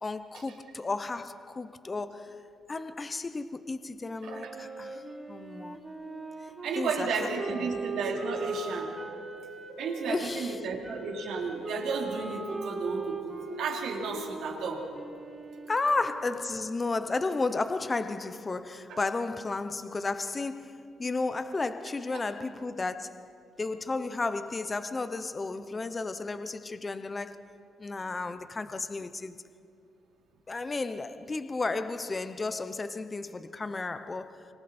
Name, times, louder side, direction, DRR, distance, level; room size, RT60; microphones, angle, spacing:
voice 1, 0.0-5.0 5.3-5.8 6.7-7.8 10.0-10.7 15.7-27.4 27.8-29.4 30.5-34.5, left 3 dB, 20° left, 0.7 m, -33 dB
Wind instrument woodwind instrument, 4.2-10.2 10.8-16.7, right 3 dB, 15° right, 3.5 m, -40 dB
voice 2, 6.6-8.9 9.8-14.8 18.9-19.0, right 4 dB, 75° right, 3.4 m, -33 dB
27.5 x 25.5 x 4.3 m
cardioid pair, 155°, 0 cm